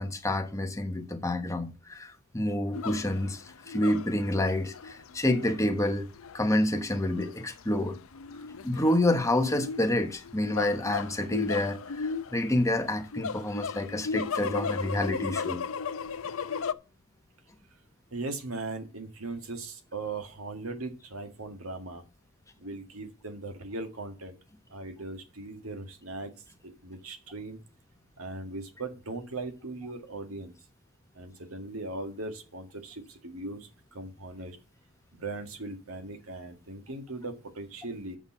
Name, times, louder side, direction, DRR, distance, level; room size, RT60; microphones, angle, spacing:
voice 1, 0.0-6.1 6.3-8.0 8.6-15.6, left 1 dB, 15° left, 1.2 m, -28 dB
sound 1, 2.7-16.7, left 5 dB, 75° left, 0.6 m, -36 dB
voice 2, 18.1-22.1 22.6-24.4 24.7-26.3 26.6-27.6 28.2-30.5 31.1-34.6 35.1-38.2, right 2 dB, 90° right, 1.9 m, -39 dB
7.2 x 6.4 x 7.3 m
head